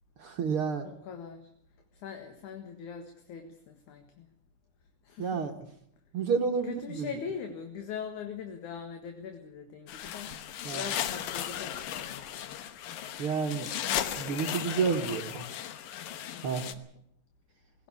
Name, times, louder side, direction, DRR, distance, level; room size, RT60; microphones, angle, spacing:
voice 1, 0.2-0.9 5.2-5.5 6.1-7.1 10.6-10.9 13.2-13.7 14.2-15.5 16.4-16.6, right 5 dB, 60° right, 4 dB, 1.6 m, -30 dB
voice 2, 0.8-1.5 1.9-4.3 5.0-5.5 6.6-10.3 10.7-12.6 16.3-16.8, left 6 dB, 65° left, 6 dB, 2.9 m, -42 dB
sound 1, 9.9-16.8, left 10 dB, 85° left, 2.8 m, -36 dB
21.0 x 17.0 x 8.4 m, 0.68 s
omnidirectional pair, 4.0 m